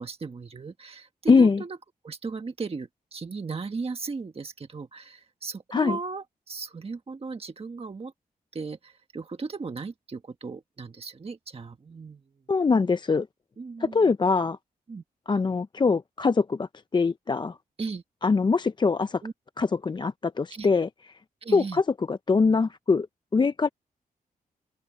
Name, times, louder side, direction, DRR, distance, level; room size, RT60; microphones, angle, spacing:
voice 1, 0.0-1.8 2.0-8.1 8.5-12.2 13.6-14.1 14.9-15.0 17.8-18.0 19.2-19.3 20.5-20.7 21.4-21.8, right 4 dB, 40° right, 1.4 m, -36 dB
voice 2, 1.3-1.6 5.7-6.0 12.5-13.3 13.8-14.6 15.3-17.6 18.2-19.2 19.6-21.2 21.5-23.1 23.3-23.7, left 4 dB, 30° left, 0.4 m, -23 dB
open air
cardioid pair, 85°, 16 cm